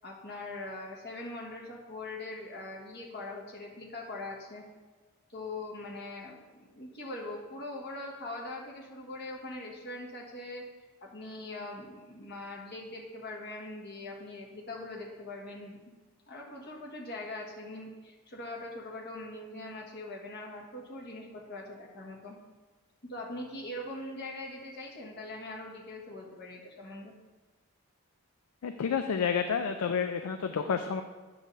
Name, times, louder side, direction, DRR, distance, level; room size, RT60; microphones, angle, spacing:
voice 1, 0.0-4.6 5.3-10.6 11.0-15.8 16.3-22.4 23.0-27.1, left 2 dB, 50° left, -2 dB, 1.4 m, -42 dB
voice 2, 28.6-31.0, left 6 dB, 90° left, 7 dB, 0.4 m, -30 dB
9.5 x 3.2 x 6.6 m, 1.3 s
head